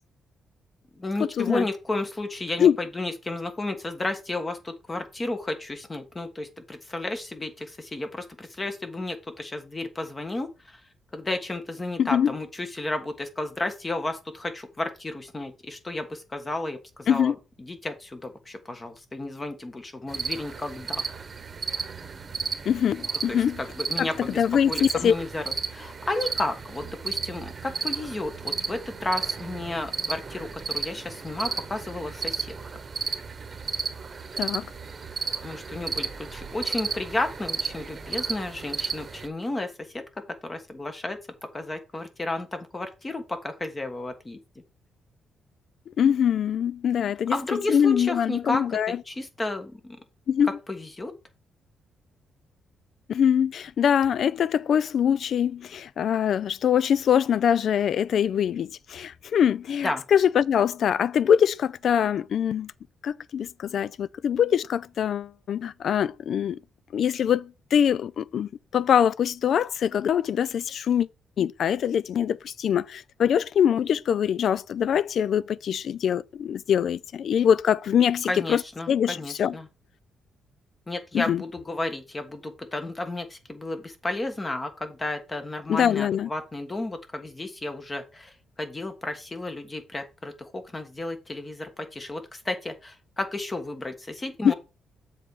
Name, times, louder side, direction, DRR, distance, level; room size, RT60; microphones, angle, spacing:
voice 1, 0.9-10.8 11.1-17.3 17.6-21.0 23.3-32.6 35.4-40.0 40.4-41.2 41.5-44.4 47.3-50.0 50.7-51.1 59.8-60.0 78.3-79.7 80.9-94.5, left 2 dB, 20° left, 1.3 m, -32 dB
voice 2, 12.0-12.3 17.1-17.3 22.7-23.6 24.0-25.2 34.4-34.7 46.0-47.3 47.7-49.0 50.3-50.5 53.1-62.7 63.0-66.6 66.9-71.1 71.4-78.6 78.9-79.5 81.1-81.4 85.7-86.3 94.4-94.5, left 8 dB, 60° left, 0.3 m, -23 dB
sound 1, 20.1-39.3, right 5 dB, 35° right, 1.1 m, -33 dB
7.3 x 4.1 x 5.1 m
cardioid pair, 125°, 0 cm